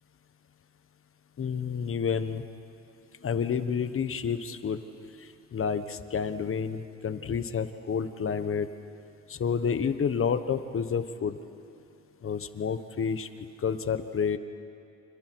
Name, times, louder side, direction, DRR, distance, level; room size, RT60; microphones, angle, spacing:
voice 1, 1.4-2.4 3.2-4.8 5.5-8.7 9.3-11.4 12.2-13.3 13.6-14.4, left 6 dB, 45° left, 10 dB, 1.2 m, -29 dB
30.0 x 27.0 x 4.7 m, 2.6 s
cardioid pair, 90°, 30 cm